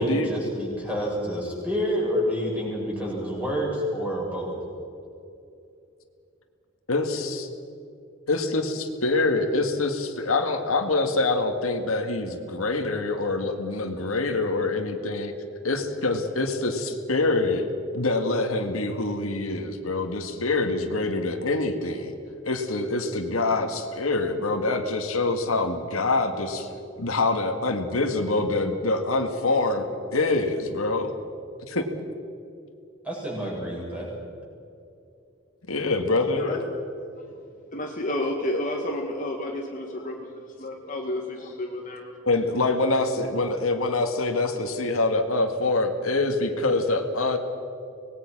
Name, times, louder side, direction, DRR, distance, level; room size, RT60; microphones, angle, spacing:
voice 1, 0.0-4.5 33.0-34.1, equal, 5° right, -4 dB, 7.5 m, -28 dB
voice 2, 6.9-7.5 8.3-15.3 15.6-17.6 17.9-22.1 22.4-26.7 27.0-29.8 30.1-31.1 31.7-31.9 35.7-36.5 42.2-47.4, left 2 dB, 90° left, 4 dB, 2.0 m, -25 dB
voice 3, 37.7-42.1, left 1 dB, 40° left, 0 dB, 1.9 m, -31 dB
25.5 x 20.0 x 6.2 m, 2.6 s
head